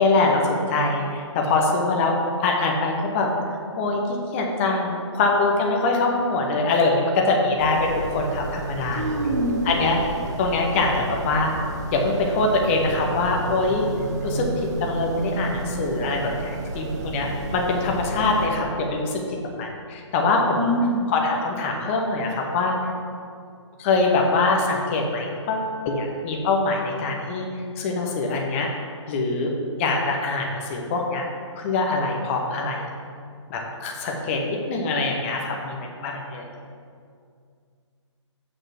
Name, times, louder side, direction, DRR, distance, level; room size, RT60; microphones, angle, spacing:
voice 1, 0.0-2.2 2.4-3.3 3.7-9.3 9.6-11.5 11.9-13.9 14.2-19.2 19.6-20.7 21.1-22.8 23.8-27.5 27.8-28.7 29.1-29.5 29.8-31.2 31.6-32.9 33.5-36.5, left 3 dB, 25° left, 0 dB, 0.9 m, -23 dB
sound 1, 7.6-18.5, right 3 dB, 35° right, 0.7 m, -31 dB
voice 2, 8.9-9.5 20.6-21.0, equal, 85° right, 2 dB, 1.2 m, -24 dB
6.6 x 4.9 x 5.8 m, 2.2 s
figure-of-eight pair, 130°, 16 cm